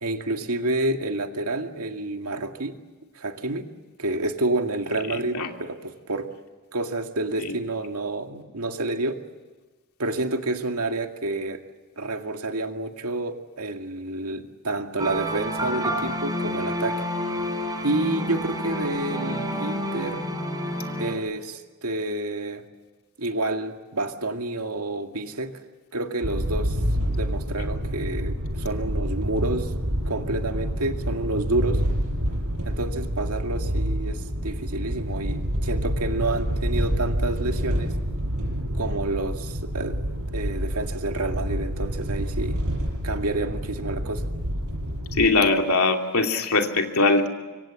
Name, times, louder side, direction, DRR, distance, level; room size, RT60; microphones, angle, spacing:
voice 1, 0.0-2.8 3.2-3.7 4.0-6.3 6.7-9.2 10.0-11.6 12.0-17.0 17.8-20.2 21.0-22.6 23.2-25.5 25.9-26.8 27.1-29.7 30.1-31.8 32.7-37.9 38.7-40.0 40.3-42.6 43.0-44.2, right 2 dB, 90° right, 5 dB, 2.2 m, -29 dB
sound 1, 15.0-21.2, equal, 15° right, 4.6 m, -29 dB
sound 2, 26.2-45.3, equal, 70° right, 6.8 m, -28 dB
voice 2, 45.2-47.3, left 3 dB, 75° left, 3 dB, 2.8 m, -21 dB
25.5 x 25.0 x 7.7 m, 1.3 s
head